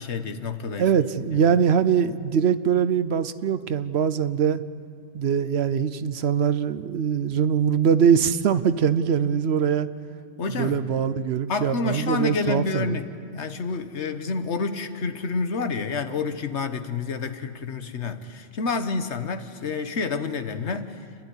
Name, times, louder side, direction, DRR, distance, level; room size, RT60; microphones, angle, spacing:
voice 1, 0.0-0.9 10.4-10.8 11.5-20.9, left 4 dB, 65° left, 9 dB, 1.4 m, -29 dB
voice 2, 0.8-4.6 5.1-9.9 10.5-13.0, right 7 dB, 65° right, 13 dB, 0.9 m, -22 dB
29.5 x 12.0 x 9.8 m, 2.4 s
omnidirectional pair, 1.3 m